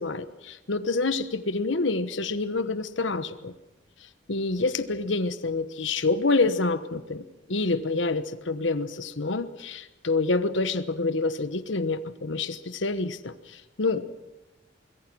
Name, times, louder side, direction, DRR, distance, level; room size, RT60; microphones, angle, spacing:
voice 1, 0.0-3.5 4.3-14.1, left 3 dB, 80° left, 12 dB, 1.2 m, -27 dB
25.0 x 22.0 x 6.2 m, 1.0 s
head